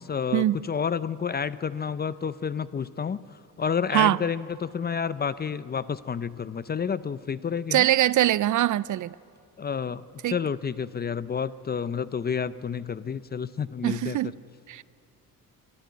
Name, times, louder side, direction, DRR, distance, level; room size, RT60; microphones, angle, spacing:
voice 1, 0.0-7.9 9.6-14.2, left 6 dB, 25° left, 0.5 m, -30 dB
voice 2, 7.7-9.2 10.2-10.4 13.8-14.3 14.7-14.8, right 13 dB, 55° right, 0.4 m, -22 dB
24.5 x 13.0 x 9.5 m
cardioid pair, 115°, 38 cm